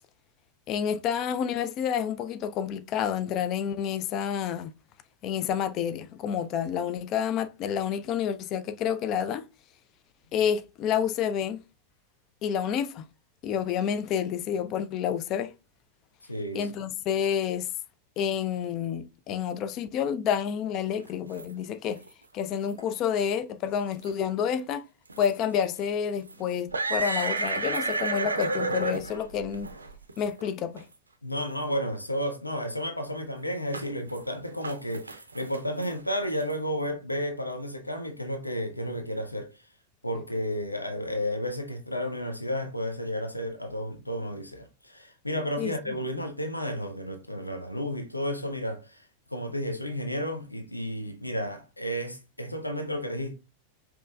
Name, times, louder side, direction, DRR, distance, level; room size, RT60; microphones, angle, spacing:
voice 1, 0.7-4.7 5.2-9.4 10.3-11.6 12.4-13.1 13.4-15.5 16.5-17.7 18.2-22.0 22.3-24.8 25.2-29.7 30.2-30.8 45.6-45.7, left 8 dB, 35° left, 0.3 m, -29 dB
voice 2, 16.2-16.7 31.2-39.6 40.0-49.1 49.3-53.3, equal, 85° left, 0.6 m, -32 dB
sound 1, 21.0-21.4 21.9-22.1 22.7-22.8 23.2-23.3 23.8-24.2 25.1-25.3 25.8-25.9 26.3-30.5 30.8-30.9 31.6-31.7 33.7-34.2 34.4-36.5, right 3 dB, 75° right, 0.4 m, -32 dB
5.2 x 3.0 x 2.3 m
figure-of-eight pair, 90°, 0 cm